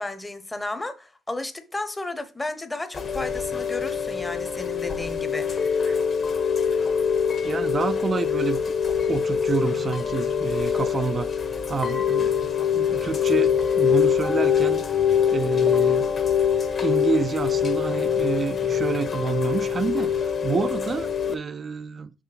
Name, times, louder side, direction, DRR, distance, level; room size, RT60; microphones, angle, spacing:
voice 1, 0.0-5.8, left 2 dB, 15° left, 0.9 m, -33 dB
Chime / Rain, 2.9-21.3, left 7 dB, 45° left, 1.2 m, -24 dB
voice 2, 7.4-8.8 9.1-11.3 11.7-12.3 12.7-16.1 16.8-22.1, right 5 dB, 40° right, 0.4 m, -28 dB
5.8 x 3.1 x 5.7 m
cardioid pair, 95°, 0 cm